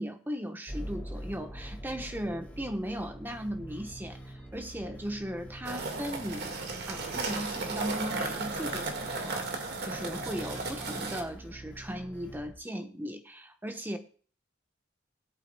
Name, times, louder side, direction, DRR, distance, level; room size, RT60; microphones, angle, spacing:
voice 1, 0.0-14.0, equal, 10° right, 1.0 m, -37 dB
sound 1, 0.7-12.6, right 1 dB, 10° left, 1.9 m, -45 dB
sound 2, 5.6-11.2, right 3 dB, 60° right, 1.8 m, -35 dB
20.5 x 8.4 x 2.3 m
head